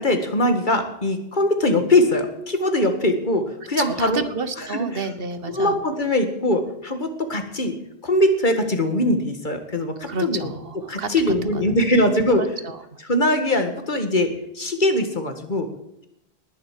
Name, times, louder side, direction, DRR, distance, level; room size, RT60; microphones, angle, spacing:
voice 1, 0.0-4.2 4.6-4.9 5.5-7.8 8.0-10.5 10.9-12.4 13.1-15.7, left 1 dB, 50° left, 7 dB, 2.0 m, -21 dB
voice 2, 3.8-5.8 10.1-11.1 11.4-11.7 12.4-13.0, right 4 dB, 65° right, 11 dB, 1.4 m, -30 dB
19.5 x 7.8 x 7.6 m, 0.82 s
omnidirectional pair, 1.0 m